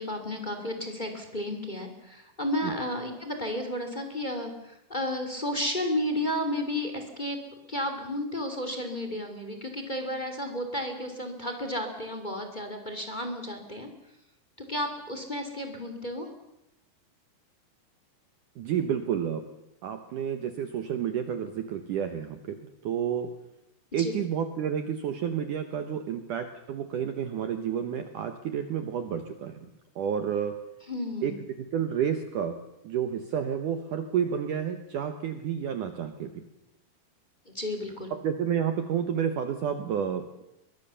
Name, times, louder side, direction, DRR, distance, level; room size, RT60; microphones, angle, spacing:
voice 1, 0.0-7.4 7.7-13.9 14.7-16.3 24.0-24.1 30.9-31.3 37.5-38.1, left 1 dB, 15° left, 5 dB, 2.2 m, -32 dB
voice 2, 18.6-19.5 19.8-22.6 22.8-23.3 23.9-29.7 30.0-30.6 31.2-31.3 31.7-32.5 32.8-36.4 38.2-40.2, right 8 dB, 65° right, 8 dB, 2.3 m, -30 dB
22.5 x 22.0 x 7.0 m, 0.87 s
omnidirectional pair, 4.8 m